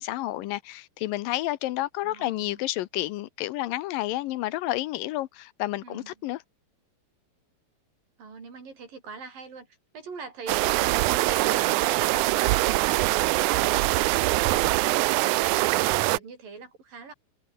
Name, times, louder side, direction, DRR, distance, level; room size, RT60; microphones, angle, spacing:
voice 1, 0.0-6.4, left 16 dB, 75° left, 2.4 m, -30 dB
voice 2, 2.0-2.6 5.8-6.1 8.2-9.7 9.9-10.7 11.0-17.1, right 4 dB, 70° right, 7.6 m, -41 dB
sound 1, 10.5-16.2, right 19 dB, 90° right, 1.8 m, -23 dB
omnidirectional pair, 4.1 m